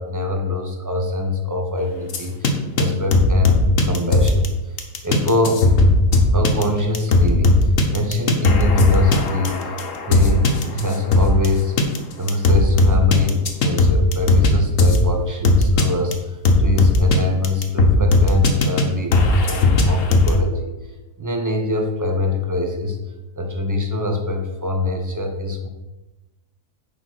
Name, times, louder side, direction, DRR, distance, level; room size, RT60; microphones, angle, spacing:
voice 1, 0.0-4.5 5.0-5.7 6.3-9.6 10.1-11.8 12.2-20.7 21.2-23.0 23.4-25.7, left 2 dB, 20° right, 3 dB, 0.6 m, -24 dB
sound 1, 2.1-2.5 2.8-2.9 3.1-4.5 4.8-11.5 11.8-12.0 12.3-14.5 14.8-15.0 15.4-15.8 16.1-16.2 16.4-17.2 17.4-18.8 19.1-20.3, left 2 dB, 55° left, 1.3 m, -16 dB
7.0 x 4.8 x 6.0 m, 1.1 s
omnidirectional pair, 1.7 m